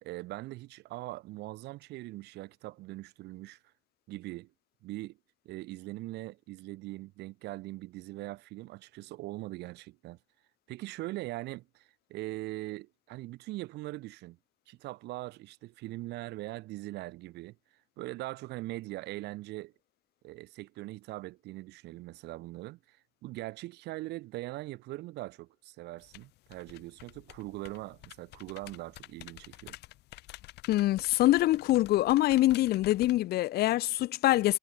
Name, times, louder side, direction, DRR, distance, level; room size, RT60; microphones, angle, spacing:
voice 1, 0.0-3.6 4.1-4.5 4.8-5.2 5.5-10.2 10.7-14.4 14.7-17.6 18.0-19.7 20.2-23.0 23.2-29.8, right 18 dB, 85° right, 2.0 m, -41 dB
sound 1, 26.0-33.2, left 18 dB, 85° left, 5.3 m, -50 dB
voice 2, 30.7-34.6, left 15 dB, 70° left, 0.6 m, -25 dB
cardioid pair, 110°, 17 cm